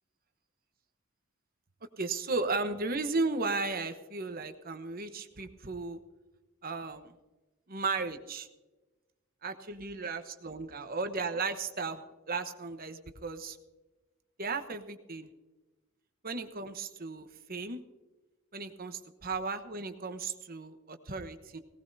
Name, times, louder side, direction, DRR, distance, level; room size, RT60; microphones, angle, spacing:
voice 1, 2.0-6.0 6.6-7.1 7.7-8.5 9.4-13.6 14.4-15.3 16.2-17.8 18.5-21.6, right 3 dB, 40° right, 8 dB, 1.1 m, -35 dB
18.5 x 18.0 x 2.7 m, 1.1 s
head